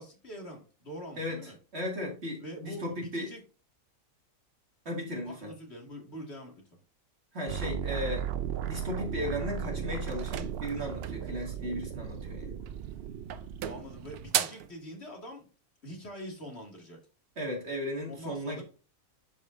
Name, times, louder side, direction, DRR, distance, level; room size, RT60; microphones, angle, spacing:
voice 1, 0.0-1.6 2.4-3.4 5.2-6.5 13.6-15.5 15.8-17.0 18.1-18.6, equal, 45° left, 0 dB, 2.4 m, -44 dB
voice 2, 1.2-3.3 4.9-5.5 7.3-8.3 8.6-12.5 17.4-18.6, equal, 45° right, 0 dB, 2.5 m, -36 dB
sound 1, 7.5-14.3, right 8 dB, 65° right, 0.6 m, -36 dB
sound 2, 10.1-11.3 12.6-13.0 13.3-14.7, right 10 dB, 85° right, 1.2 m, -35 dB
11.5 x 5.0 x 2.6 m, 0.36 s
omnidirectional pair, 1.5 m